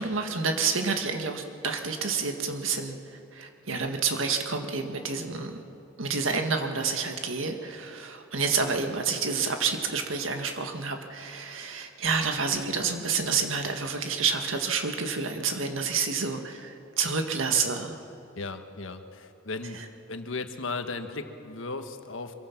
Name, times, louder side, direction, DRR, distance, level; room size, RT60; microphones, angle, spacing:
voice 1, 0.0-3.0 3.3-5.6 6.0-18.0, right 5 dB, 90° right, 5 dB, 1.8 m, -29 dB
voice 2, 18.3-19.8 20.1-22.4, left 3 dB, 85° left, 7 dB, 1.4 m, -36 dB
25.0 x 22.5 x 6.0 m, 2.8 s
head